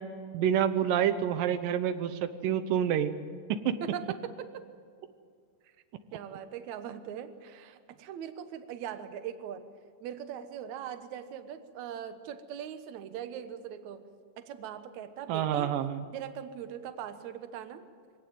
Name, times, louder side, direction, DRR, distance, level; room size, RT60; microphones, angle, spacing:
voice 1, 0.3-3.1 3.5-3.8 15.3-16.0, right 9 dB, 90° right, 10 dB, 2.7 m, -28 dB
voice 2, 3.8-4.6 6.1-9.6 10.0-14.0 14.4-15.7 16.1-17.8, right 9 dB, 65° right, 9 dB, 2.4 m, -40 dB
24.0 x 18.0 x 9.3 m, 2.1 s
omnidirectional pair, 3.8 m